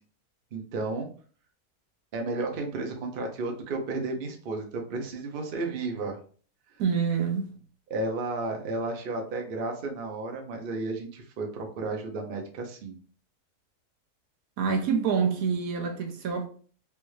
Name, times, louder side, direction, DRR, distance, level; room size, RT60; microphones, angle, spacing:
voice 1, 0.5-1.1 2.1-6.2 7.9-13.0, right 3 dB, 50° right, 0.7 m, -33 dB
voice 2, 6.8-7.6 14.6-16.5, right 6 dB, 70° right, 1.0 m, -26 dB
3.4 x 2.6 x 3.1 m
omnidirectional pair, 1.6 m